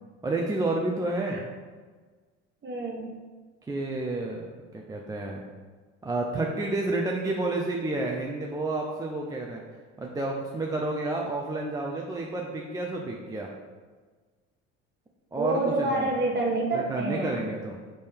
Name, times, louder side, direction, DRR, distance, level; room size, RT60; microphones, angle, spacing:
voice 1, 0.2-1.5 3.7-4.4 4.7-5.4 6.0-9.6 10.0-13.5 15.3-16.1 16.7-17.8, right 2 dB, 10° right, -1 dB, 0.4 m, -30 dB
voice 2, 2.6-3.1 15.4-17.4, right 2 dB, 30° right, 0 dB, 1.1 m, -28 dB
5.4 x 2.7 x 3.4 m, 1.4 s
hypercardioid pair, 80°, 37 cm